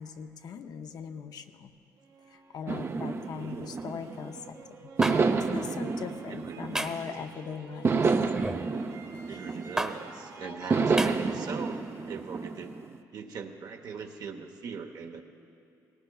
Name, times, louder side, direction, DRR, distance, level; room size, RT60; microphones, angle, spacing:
voice 1, 0.0-1.7 2.3-8.2 9.3-9.5 10.4-10.9, left 6 dB, 65° left, 7 dB, 0.7 m, -41 dB
sound 1, 2.0-13.0, right 5 dB, 90° right, 3.1 m, -52 dB
sound 2, 2.7-4.4 5.0-7.2 7.8-10.1 10.7-13.0, right 4 dB, 35° right, 0.6 m, -29 dB
voice 2, 3.4-3.8 6.3-6.9 9.3-12.8 13.1-15.2, right 6 dB, 65° right, 5 dB, 1.0 m, -41 dB
sound 3, 5.0-5.2 6.7-7.0 8.3-8.6 9.8-9.9 11.0-11.1, right 1 dB, 10° right, 1.0 m, -30 dB
19.0 x 18.0 x 2.4 m, 2.6 s
supercardioid pair, 70°, 7 cm